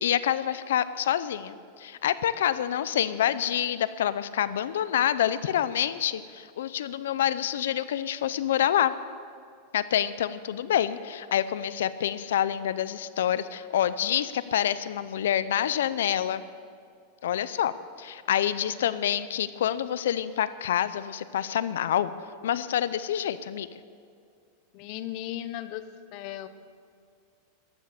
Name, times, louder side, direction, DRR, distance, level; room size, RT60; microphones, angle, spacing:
voice 1, 0.0-8.9 9.7-16.4 17.2-22.1 22.4-23.8, left 10 dB, 85° left, 15 dB, 0.6 m, -27 dB
voice 2, 24.7-25.8 26.1-26.5, left 13 dB, 50° left, 12 dB, 0.9 m, -36 dB
14.0 x 12.0 x 6.8 m, 2.3 s
supercardioid pair, 140°, 0 cm